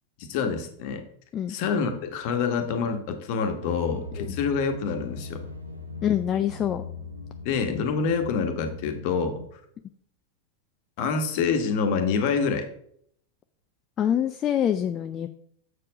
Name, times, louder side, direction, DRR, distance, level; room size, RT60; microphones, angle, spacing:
voice 1, 0.2-1.0 1.5-5.4 7.4-9.4 11.0-12.7, left 5 dB, 45° left, 5 dB, 1.3 m, -26 dB
sound 1, 3.6-9.4, left 4 dB, 80° right, 1.0 m, -39 dB
voice 2, 6.0-6.8 14.0-15.3, left 10 dB, 30° left, 8 dB, 0.4 m, -25 dB
7.5 x 4.4 x 5.2 m, 0.66 s
figure-of-eight pair, 90°, 0 cm